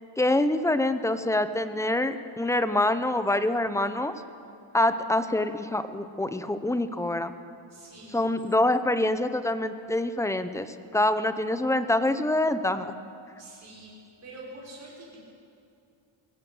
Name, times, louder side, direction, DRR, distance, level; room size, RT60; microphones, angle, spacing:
voice 1, 0.2-4.1 4.7-7.3 8.1-13.0, left 1 dB, 5° left, 10 dB, 0.8 m, -25 dB
voice 2, 7.7-8.2 13.4-13.9 14.2-15.2, right 2 dB, 30° right, -5 dB, 6.0 m, -45 dB
22.5 x 17.0 x 7.9 m, 2.5 s
wide cardioid pair, 145°, 49 cm